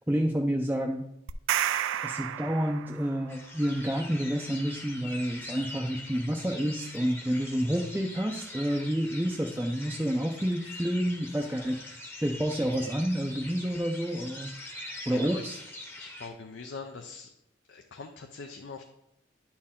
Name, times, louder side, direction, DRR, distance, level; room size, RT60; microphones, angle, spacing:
voice 1, 0.1-1.0 2.0-14.5 15.1-15.6, equal, 10° right, 0 dB, 0.4 m, -29 dB
sound 1, 1.3-3.3, right 10 dB, 90° right, 0.3 m, -31 dB
sound 2, 3.3-16.3, left 2 dB, 10° left, 0.8 m, -43 dB
voice 2, 15.1-15.6 16.0-17.3 17.7-18.8, left 4 dB, 70° left, 4 dB, 0.5 m, -43 dB
10.5 x 4.4 x 3.6 m, 0.82 s
head